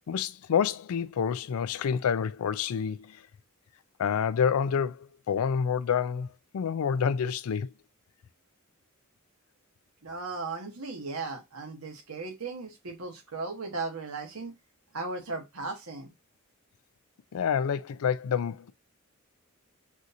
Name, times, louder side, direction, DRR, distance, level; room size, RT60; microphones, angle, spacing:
voice 1, 0.1-3.2 4.0-7.7 17.3-18.7, left 7 dB, 90° left, 0.4 m, -28 dB
voice 2, 10.0-14.5 14.9-16.1, right 3 dB, 85° right, 1.2 m, -36 dB
6.1 x 2.7 x 2.6 m
head